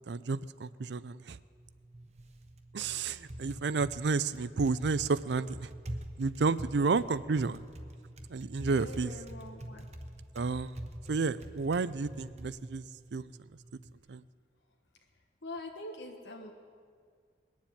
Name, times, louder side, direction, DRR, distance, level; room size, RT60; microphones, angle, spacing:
voice 1, 0.1-1.4 2.7-5.7 6.2-7.6 8.3-9.1 10.3-10.8 11.1-12.8 13.1-13.3 14.1-14.2, right 4 dB, 80° right, 17 dB, 0.5 m, -31 dB
Typing, 1.5-14.0, right 1 dB, 40° right, 1.0 m, -46 dB
voice 2, 8.6-9.9 15.4-16.5, left 2 dB, 90° left, 2 dB, 1.3 m, -44 dB
20.5 x 7.4 x 9.2 m, 2.1 s
head